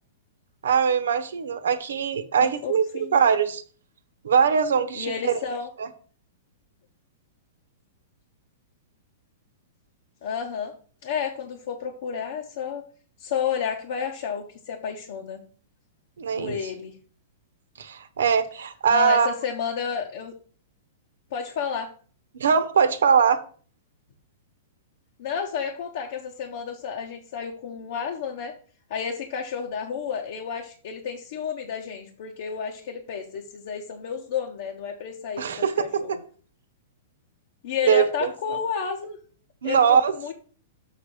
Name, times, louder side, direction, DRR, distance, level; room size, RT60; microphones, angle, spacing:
voice 1, 0.6-3.6 4.2-5.4 5.8-5.9 16.2-16.6 17.8-19.3 22.4-23.4 35.4-36.2 37.9-38.6 39.6-40.3, right 6 dB, 85° right, 11 dB, 0.9 m, -22 dB
voice 2, 2.4-3.2 4.9-5.7 10.2-10.7 11.0-12.8 13.2-15.4 16.3-17.0 18.9-20.3 21.3-21.9 25.2-28.5 28.9-36.2 37.6-39.2 39.6-40.3, left 7 dB, 60° left, 1 dB, 1.1 m, -31 dB
7.1 x 3.4 x 6.2 m, 0.42 s
hypercardioid pair, 130°, 0 cm